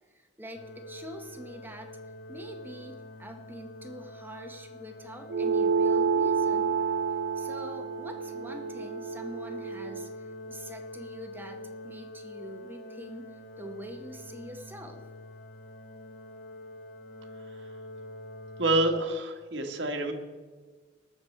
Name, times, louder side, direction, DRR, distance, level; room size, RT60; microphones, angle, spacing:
voice 1, 0.0-2.0 2.3-6.8 7.4-15.0, equal, 10° right, 5 dB, 0.8 m, -45 dB
sound 1, 0.5-19.0, left 1 dB, 80° left, 2.1 m, -45 dB
sound 2, 5.3-10.1, right 5 dB, 65° right, 0.4 m, -29 dB
voice 2, 18.6-20.1, right 2 dB, 80° right, 3 dB, 1.5 m, -27 dB
20.0 x 6.7 x 4.5 m, 1.4 s
head